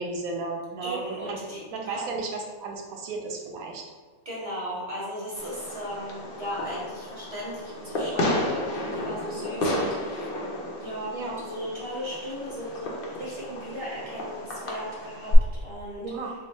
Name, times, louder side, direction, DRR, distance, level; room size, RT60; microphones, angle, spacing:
voice 1, 0.0-1.4 1.7-2.3 2.6-3.8 11.1-11.4 16.0-16.3, right 4 dB, 80° right, 1 dB, 1.1 m, -34 dB
voice 2, 0.8-2.0 4.2-10.3 10.8-15.3 15.6-16.3, equal, 25° right, -8 dB, 1.1 m, -36 dB
Fireworks, 5.4-15.4, left 1 dB, 55° left, 0.7 m, -32 dB
3.5 x 2.1 x 4.0 m, 1.5 s
omnidirectional pair, 1.5 m